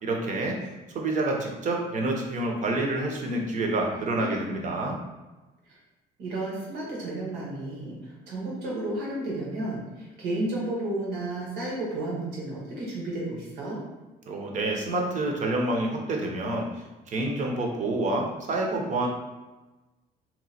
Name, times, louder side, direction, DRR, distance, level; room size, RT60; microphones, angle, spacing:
voice 1, 0.0-0.6 0.9-5.0 14.3-16.7 17.1-19.1, right 2 dB, 45° right, 0 dB, 0.8 m, -28 dB
voice 2, 3.9-4.8 5.7-5.8 6.2-13.8, right 2 dB, 80° right, -4 dB, 1.3 m, -33 dB
2.9 x 2.2 x 4.1 m, 1.1 s
cardioid pair, 110°, 17 cm